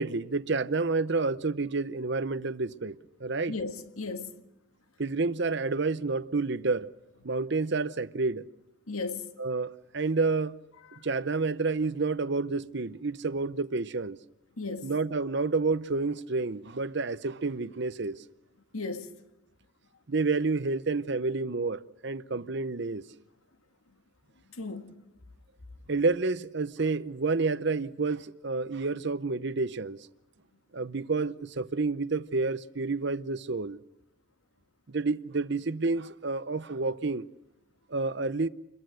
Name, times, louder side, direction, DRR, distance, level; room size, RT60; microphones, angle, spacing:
voice 1, 0.0-3.5 5.0-6.9 7.2-8.5 9.4-10.6 11.0-14.2 14.8-18.2 20.1-23.1 25.9-30.0 30.7-33.8 34.9-37.3 37.9-38.5, right 3 dB, 55° right, 0.8 m, -29 dB
voice 2, 3.5-4.4 8.9-9.3 10.9-11.0 14.6-14.9 18.7-19.2 24.5-24.9, left 3 dB, 85° left, 1.8 m, -36 dB
28.0 x 22.0 x 6.4 m
head